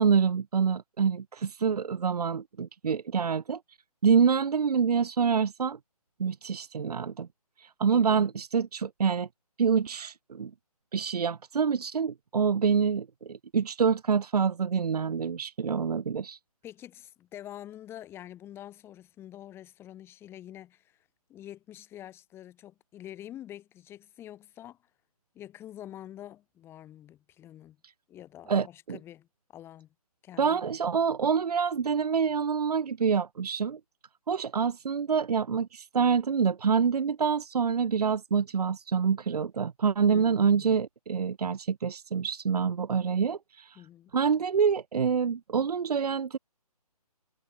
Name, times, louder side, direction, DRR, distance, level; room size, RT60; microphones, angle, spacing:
voice 1, 0.0-3.6 4.0-5.8 6.2-7.3 7.6-9.3 9.6-10.5 10.9-16.4 28.5-29.0 30.4-33.8 34.3-43.8 44.1-46.4, right 6 dB, 75° right, 0.6 m, -26 dB
voice 2, 7.9-8.3 16.6-21.0 21.3-24.8 25.3-27.8 28.1-29.9 30.2-30.7 40.1-40.8 43.8-44.1, left 12 dB, 10° left, 2.2 m, -46 dB
figure-of-eight pair, 150°, 20 cm